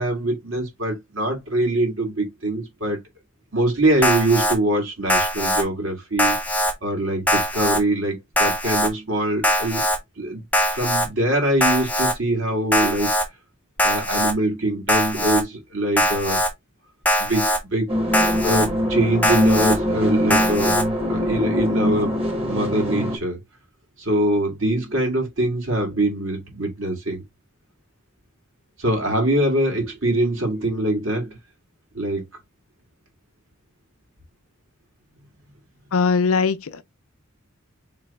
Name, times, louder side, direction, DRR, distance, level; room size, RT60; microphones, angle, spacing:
voice 1, 0.0-3.0 3.5-6.3 6.8-9.9 10.2-10.4 10.7-13.1 13.8-16.4 17.2-17.9 18.4-20.7 21.1-22.2 22.5-23.4 24.0-27.2 28.8-31.4 31.9-32.2, right 1 dB, 60° right, 1.8 m, -23 dB
Alarm, 4.0-4.6 5.1-5.6 6.2-6.7 7.3-7.8 8.4-8.9 9.4-10.0 10.5-11.1 11.6-12.1 12.7-13.3 13.8-14.3 14.9-15.4 16.0-16.5 17.1-17.6 18.1-18.7 19.2-19.8 20.3-20.8, equal, 5° left, 0.5 m, -21 dB
sound 1, 17.9-23.2, equal, 25° right, 1.2 m, -22 dB
voice 2, 35.9-36.8, left 5 dB, 75° left, 0.5 m, -20 dB
4.0 x 3.2 x 3.3 m
head